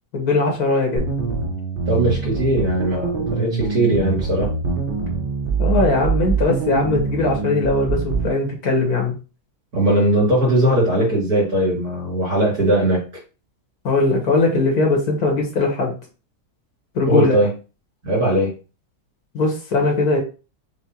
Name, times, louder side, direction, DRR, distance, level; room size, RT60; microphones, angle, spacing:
voice 1, 0.1-1.0 5.6-9.1 13.8-15.9 17.0-17.4 19.3-20.2, left 3 dB, 80° left, 1 dB, 1.8 m, -20 dB
sound 1, 1.0-8.3, right 4 dB, 45° right, 0.8 m, -24 dB
voice 2, 1.9-4.5 9.7-13.1 17.1-17.5 18.0-18.5, right 1 dB, 75° right, -4 dB, 3.2 m, -19 dB
6.2 x 2.2 x 2.9 m, 0.33 s
omnidirectional pair, 1.6 m